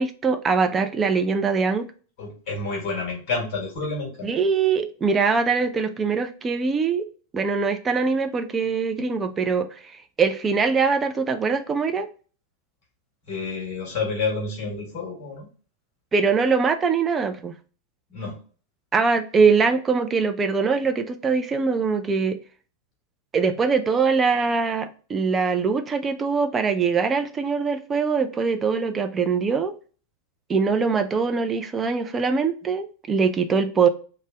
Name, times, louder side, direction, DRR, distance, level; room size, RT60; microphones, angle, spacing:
voice 1, 0.0-1.9 4.2-7.1 7.3-9.7 10.2-12.1 16.1-17.5 18.9-22.4 23.3-29.7 30.5-33.9, right 5 dB, 20° right, 0.3 m, -22 dB
voice 2, 2.2-4.3 13.3-15.5 18.1-18.4, left 3 dB, 40° left, 1.1 m, -29 dB
2.6 x 2.1 x 3.3 m
figure-of-eight pair, 90°, 0 cm